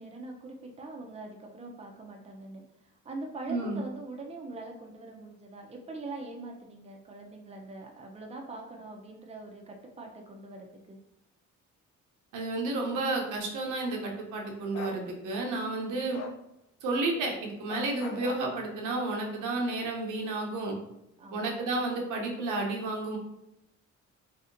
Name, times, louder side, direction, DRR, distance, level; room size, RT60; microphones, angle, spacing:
voice 1, 0.0-11.0 21.2-21.6, right 2 dB, 20° right, 1 dB, 0.6 m, -43 dB
voice 2, 3.5-3.8 12.3-16.2 16.8-20.8 21.3-23.2, right 2 dB, 85° right, 0 dB, 0.8 m, -31 dB
Bark, 14.7-15.0 16.1-16.4 17.7-18.5, left 4 dB, 60° left, 0.5 m, -40 dB
3.3 x 2.8 x 2.5 m, 0.83 s
cardioid pair, 90°, 30 cm